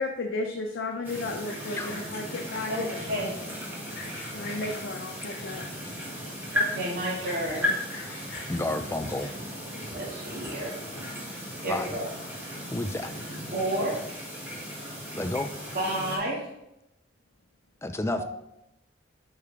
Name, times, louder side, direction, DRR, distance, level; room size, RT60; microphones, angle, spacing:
voice 1, 0.0-3.0 4.3-5.7, left 2 dB, 90° left, 2 dB, 0.7 m, -34 dB
Sawing, 0.9-3.1 3.6-4.8 5.3-5.9 6.3-6.4 6.6-6.7 7.1-9.6, left 3 dB, 50° left, 2.4 m, -45 dB
sound 1, 1.0-16.2, left 1 dB, 10° right, 1.8 m, -36 dB
voice 2, 2.7-3.3 6.5-7.7 9.9-10.7 11.6-12.0 13.5-14.0 15.7-16.4 18.2-18.3, right 1 dB, 50° right, -6 dB, 1.8 m, -30 dB
voice 3, 8.5-9.3 11.7-11.9 12.7-13.1 15.1-15.5 17.8-18.2, left 1 dB, 15° left, 8 dB, 0.4 m, -30 dB
8.7 x 4.8 x 3.3 m, 0.86 s
head